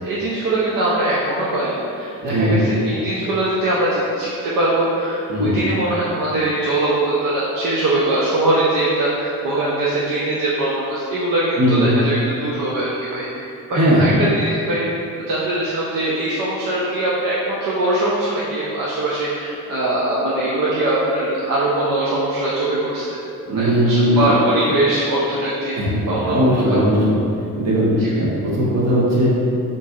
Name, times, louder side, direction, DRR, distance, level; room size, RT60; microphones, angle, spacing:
voice 1, 0.0-14.9 15.2-23.2 23.5-25.8 26.1-26.8 28.0-28.2, right 1 dB, 65° right, -7 dB, 0.8 m, -22 dB
voice 2, 2.2-2.6 5.3-5.6 11.6-11.8 13.7-14.1 23.5-24.3 25.7-26.0 26.2-27.2 27.5-29.3, equal, 45° right, -6 dB, 1.3 m, -18 dB
4.5 x 4.1 x 2.5 m, 2.7 s
cardioid pair, 80°, 36 cm